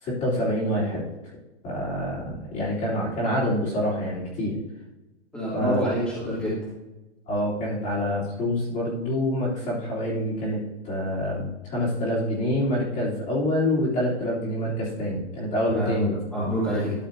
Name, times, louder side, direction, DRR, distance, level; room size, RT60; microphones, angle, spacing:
voice 1, 0.0-1.0 1.6-4.6 5.5-5.9 7.3-10.6 10.8-16.2, equal, 20° left, -7 dB, 3.2 m, -26 dB
voice 2, 5.3-6.5 15.7-16.0 16.3-17.0, equal, ahead, -11 dB, 2.8 m, -27 dB
12.5 x 6.7 x 2.7 m, 1.0 s
hypercardioid pair, 145°, 34 cm